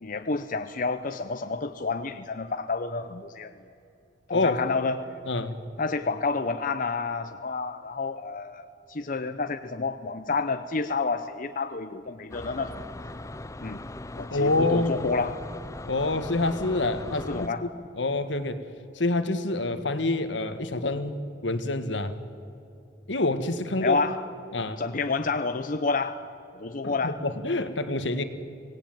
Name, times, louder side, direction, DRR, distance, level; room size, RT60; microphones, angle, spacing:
voice 1, 0.0-3.5 4.3-5.0 5.8-12.8 13.6-13.8 14.2-15.4 17.1-17.7 23.8-24.2 24.8-26.2 26.5-27.2, left 4 dB, 50° left, 8 dB, 0.8 m, -29 dB
voice 2, 5.3-5.6 14.3-15.1 15.9-17.7 18.0-18.6 18.9-22.2 23.1-24.0 24.5-24.8 26.8-28.2, left 2 dB, 80° left, 10 dB, 1.6 m, -27 dB
sound 1, 12.3-17.5, left 2 dB, 15° left, 0.5 m, -40 dB
24.5 x 18.0 x 9.1 m, 2.7 s
head